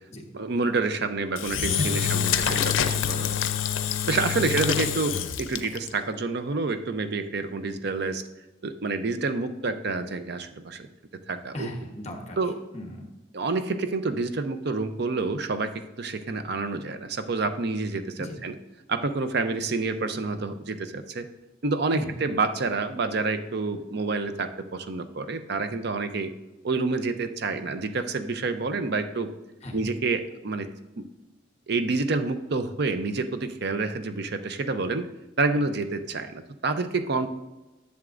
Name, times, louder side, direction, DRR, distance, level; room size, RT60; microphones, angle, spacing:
voice 1, 0.3-3.4 4.1-8.2 8.6-10.9 11.3-11.7 12.4-12.6 13.3-18.5 18.9-21.3 21.6-26.3 26.6-29.3 29.7-30.7 31.0-31.1 31.7-35.1 35.4-37.3, right 3 dB, 55° right, 9 dB, 0.6 m, -28 dB
Engine / Drill, 1.4-5.9, left 9 dB, 80° left, 0.5 m, -26 dB
voice 2, 1.8-2.2 4.3-4.8 11.5-12.4 12.7-13.1 18.2-18.4 21.9-22.2 29.6-29.8 35.5-35.6, left 1 dB, 35° left, 3 dB, 1.1 m, -35 dB
11.0 x 7.1 x 2.5 m, 1.1 s
head